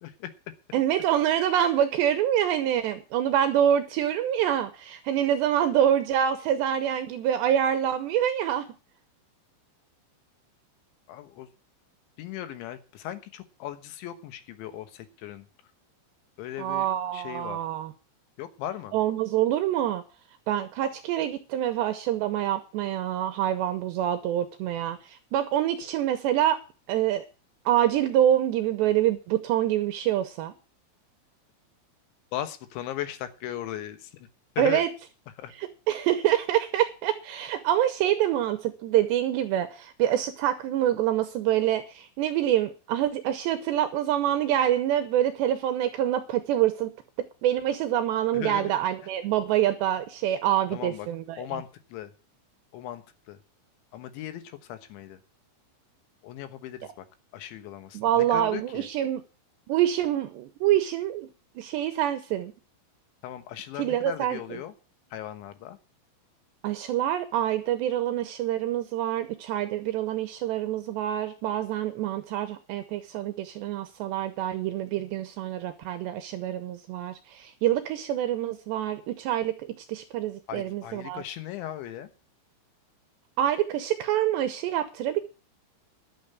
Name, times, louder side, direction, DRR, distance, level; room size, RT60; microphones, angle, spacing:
voice 1, 0.7-8.7 16.6-17.9 18.9-20.0 20.5-26.6 26.9-27.2 27.7-30.5 34.6-34.9 35.9-46.9 47.4-51.4 57.9-59.2 59.7-61.3 61.6-62.5 63.8-64.4 66.6-79.5 79.9-81.2 83.4-85.2, right 11 dB, 75° right, 9 dB, 2.6 m, -26 dB
voice 2, 11.1-11.5 12.2-15.5 16.4-16.9 17.1-17.6 18.4-19.0 32.3-34.3 34.6-34.8 35.4-35.5 48.3-48.7 50.7-51.1 51.4-52.1 52.7-53.4 53.9-55.2 56.2-57.1 57.3-58.9 63.2-64.7 65.1-65.8 80.5-82.1, left 11 dB, 70° left, 10 dB, 3.3 m, -37 dB
11.5 x 7.2 x 8.1 m, 0.33 s
omnidirectional pair, 5.9 m